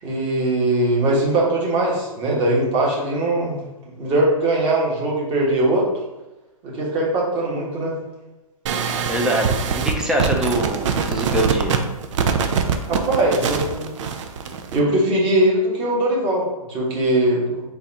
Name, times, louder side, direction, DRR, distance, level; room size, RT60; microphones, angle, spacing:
voice 1, 0.0-3.6 4.0-5.9 6.6-7.9 12.8-13.9 14.7-17.6, right 1 dB, 30° right, -4 dB, 1.3 m, -20 dB
sound 1, 8.7-14.8, right 6 dB, 55° right, 0.5 m, -23 dB
voice 2, 9.1-11.7, right 1 dB, 5° right, 0 dB, 0.5 m, -23 dB
4.0 x 2.5 x 4.0 m, 1.1 s
hypercardioid pair, 140°, 19 cm